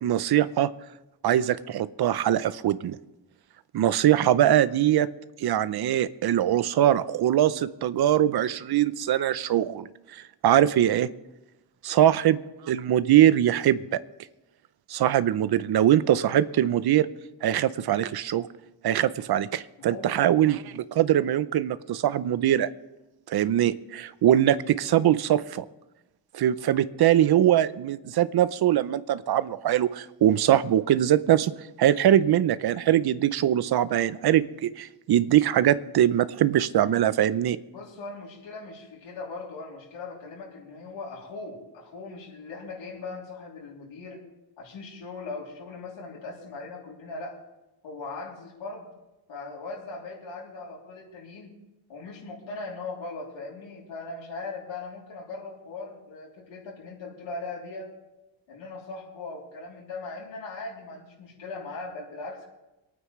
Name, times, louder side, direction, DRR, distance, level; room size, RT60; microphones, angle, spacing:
voice 1, 0.0-0.7 1.2-3.0 3.7-5.1 5.4-11.1 11.8-12.4 12.6-14.0 14.9-17.1 17.4-18.5 18.8-22.7 23.3-25.6 26.3-31.5 31.8-37.6, right 11 dB, 55° right, 16 dB, 0.6 m, -22 dB
voice 2, 19.8-20.2 37.7-44.2 44.6-47.4 47.8-48.8 49.3-51.5 51.9-57.9 58.5-62.5, left 3 dB, 85° left, -4 dB, 3.1 m, -39 dB
26.0 x 9.4 x 3.2 m, 1.0 s
wide cardioid pair, 130°, 45 cm